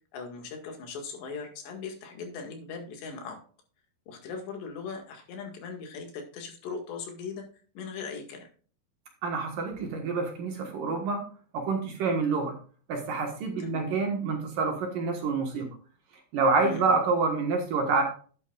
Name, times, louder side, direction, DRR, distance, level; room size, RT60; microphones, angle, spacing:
voice 1, 0.1-3.4 4.1-7.5 7.8-8.5 13.6-14.0 16.6-16.9, left 4 dB, 75° left, 3 dB, 4.1 m, -39 dB
voice 2, 9.2-11.2 11.5-12.5 12.9-15.7 16.3-18.0, right 4 dB, 60° right, 3 dB, 2.7 m, -27 dB
11.5 x 9.7 x 2.4 m, 0.41 s
omnidirectional pair, 5.0 m